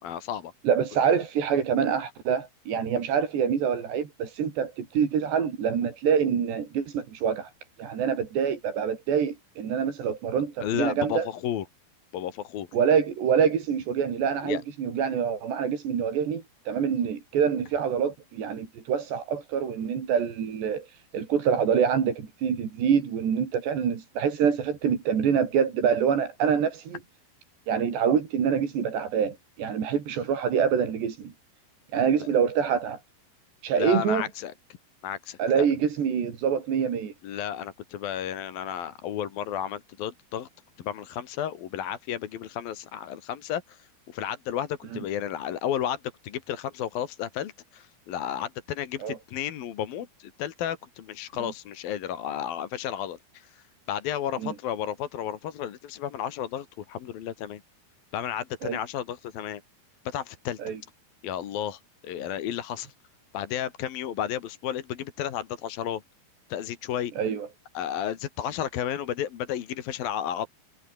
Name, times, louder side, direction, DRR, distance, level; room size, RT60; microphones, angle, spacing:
voice 1, 0.0-0.5 10.6-11.6 12.1-12.7 14.4-14.6 32.2-32.3 33.8-34.5 35.0-35.7 37.2-40.5 40.8-57.6 58.1-59.6 60.0-60.6 61.2-62.9 63.3-66.0 66.5-67.1 67.7-70.5, left 10 dB, 65° left, 3.4 m, -32 dB
voice 2, 0.7-7.5 7.8-11.3 12.7-27.0 27.7-31.3 31.9-33.0 33.6-34.3 35.4-37.1 49.0-49.2 54.4-54.5 58.6-58.8 60.6-60.8 67.2-67.5, right 7 dB, 80° right, 5.9 m, -26 dB
omnidirectional pair, 4.8 m